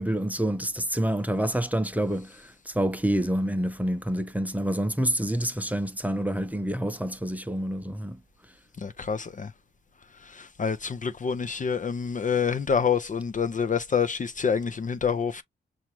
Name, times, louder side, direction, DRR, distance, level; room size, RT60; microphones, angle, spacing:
voice 1, 0.0-8.2, right 1 dB, 5° right, 0.7 m, -27 dB
voice 2, 8.8-9.5 10.3-15.4, left 6 dB, 40° left, 0.5 m, -27 dB
5.9 x 2.4 x 2.9 m
cardioid pair, 70°, 20 cm